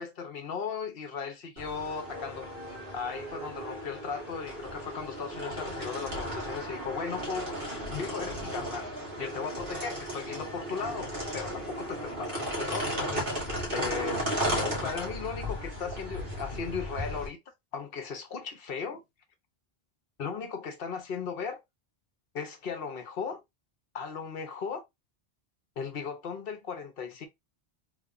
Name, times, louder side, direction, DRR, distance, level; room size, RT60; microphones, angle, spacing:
voice 1, 0.0-2.5 2.9-14.2 14.6-17.4 17.7-19.0 20.2-21.6 22.3-23.4 23.9-24.8 25.8-27.3, left 5 dB, 70° left, 1.0 m, -37 dB
sound 1, 1.6-17.3, equal, 60° right, 1.7 m, -35 dB
3.5 x 2.3 x 3.8 m
omnidirectional pair, 1.0 m